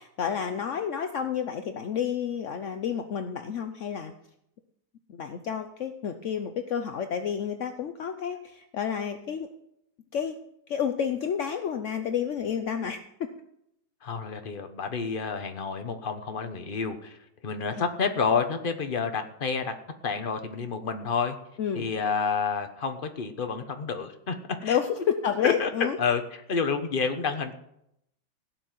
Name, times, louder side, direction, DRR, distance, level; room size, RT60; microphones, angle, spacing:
voice 1, 0.2-4.1 5.1-9.5 10.1-10.4 10.7-13.0 17.7-17.8 21.6-21.9 24.6-26.0, left 8 dB, 60° left, 7 dB, 0.8 m, -30 dB
voice 2, 14.0-17.2 17.4-19.7 20.0-21.4 21.7-24.8 25.4-27.5, left 5 dB, 35° left, 7 dB, 1.1 m, -29 dB
16.5 x 6.2 x 9.2 m, 0.79 s
omnidirectional pair, 2.1 m